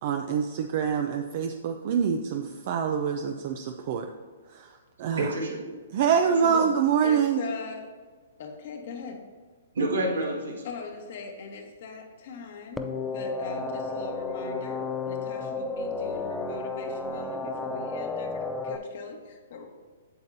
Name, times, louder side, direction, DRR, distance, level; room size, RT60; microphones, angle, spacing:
voice 1, 0.0-4.1 4.5-4.7 5.0-5.3 5.9-7.4, right 7 dB, 50° right, 5 dB, 0.5 m, -25 dB
voice 2, 5.2-5.8 6.4-6.7 9.7-10.6, right 2 dB, 85° right, -2 dB, 1.9 m, -28 dB
voice 3, 7.0-7.9 8.4-9.2 10.6-19.7, left 4 dB, 55° left, 3 dB, 1.3 m, -40 dB
sound 1, 12.8-18.8, left 3 dB, 10° left, 0.5 m, -32 dB
8.0 x 7.3 x 2.7 m, 1.5 s
hypercardioid pair, 135°, 0 cm